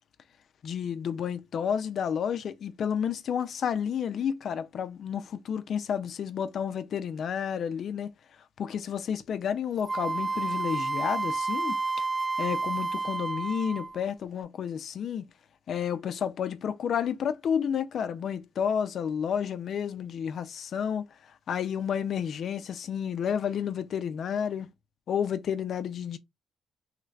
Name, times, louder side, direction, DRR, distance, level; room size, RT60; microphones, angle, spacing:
voice 1, 0.6-8.1 8.6-11.8 12.4-15.2 15.7-21.0 21.5-24.7 25.1-26.2, left 8 dB, 60° left, 0.5 m, -31 dB
Wind instrument woodwind instrument, 9.9-14.0, right 3 dB, 20° right, 0.4 m, -30 dB
3.2 x 3.2 x 2.4 m
cardioid pair, 90°, 0 cm